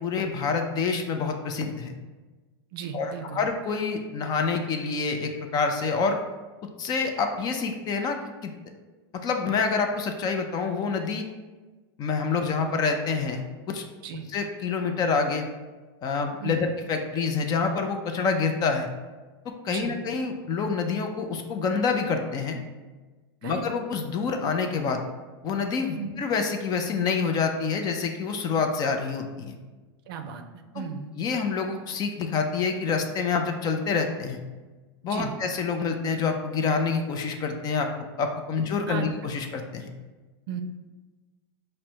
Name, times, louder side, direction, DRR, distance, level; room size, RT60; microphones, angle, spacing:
voice 1, 0.0-1.9 2.9-6.2 6.8-8.5 9.2-11.3 12.0-13.9 14.3-15.4 16.0-18.9 19.5-22.6 23.4-25.0 25.4-29.5 30.7-30.8 31.2-34.4 35.0-37.9 38.2-39.9, left 5 dB, 30° left, 5 dB, 0.5 m, -27 dB
voice 2, 2.7-3.4 14.0-14.3 16.4-16.7 19.7-20.0 23.4-23.6 25.9-26.1 30.1-30.4 30.7-31.1 35.0-35.4 38.9-39.1 40.5-40.6, right 7 dB, 60° right, 6 dB, 0.5 m, -35 dB
4.9 x 2.1 x 4.4 m, 1.3 s
hypercardioid pair, 125°, 13 cm